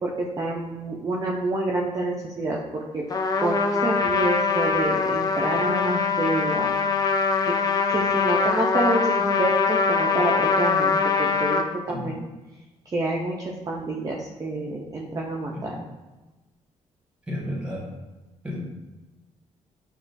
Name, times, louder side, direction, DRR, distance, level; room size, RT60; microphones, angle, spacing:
voice 1, 0.0-3.0 3.4-6.7 7.4-7.5 7.9-12.2 12.9-15.8, right 2 dB, 30° right, -2 dB, 0.5 m, -28 dB
Trumpet, 3.1-11.7, left 5 dB, 30° left, 0.4 m, -23 dB
voice 2, 11.9-12.2 15.5-15.8 17.3-17.8 18.4-18.6, equal, 10° right, -4 dB, 1.3 m, -32 dB
5.8 x 2.4 x 2.5 m, 1.1 s
cardioid pair, 95°, 12 cm